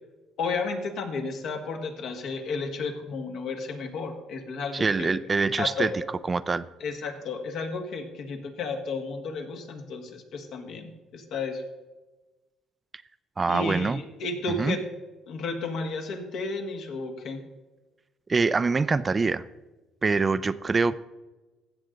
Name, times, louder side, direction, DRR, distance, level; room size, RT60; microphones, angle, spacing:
voice 1, 0.4-5.1 5.6-5.9 6.8-11.6 13.5-14.8 15.3-17.4, left 4 dB, 70° left, 4 dB, 1.7 m, -32 dB
voice 2, 4.7-5.9 6.3-6.6 13.4-14.0 14.6-14.8 18.3-19.4 20.0-20.9, right 4 dB, 25° right, 15 dB, 0.3 m, -24 dB
15.5 x 7.0 x 3.9 m, 1.2 s
cardioid pair, 120°, 0 cm